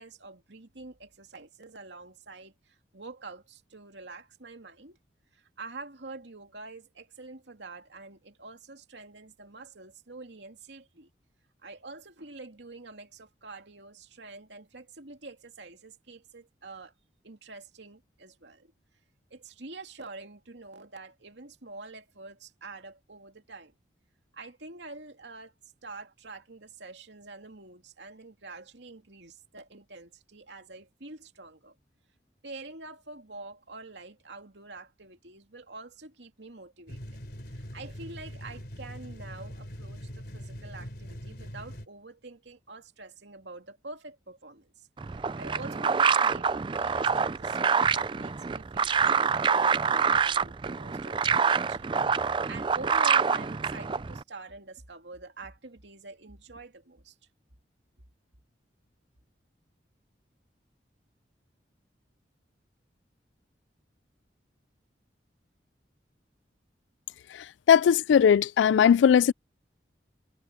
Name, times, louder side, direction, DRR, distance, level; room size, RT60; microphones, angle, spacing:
voice 1, 0.0-5.0 5.3-11.1 11.6-16.9 17.2-18.7 19.3-23.7 24.3-25.5 25.8-31.7 32.4-37.2 37.5-57.1, right 3 dB, 75° right, 2.5 m, -46 dB
sound 1, 36.9-41.9, equal, 60° left, 3.9 m, -42 dB
sound 2, 45.0-54.2, right 6 dB, 25° right, 0.4 m, -26 dB
voice 2, 67.7-69.3, left 8 dB, 85° left, 0.3 m, -19 dB
head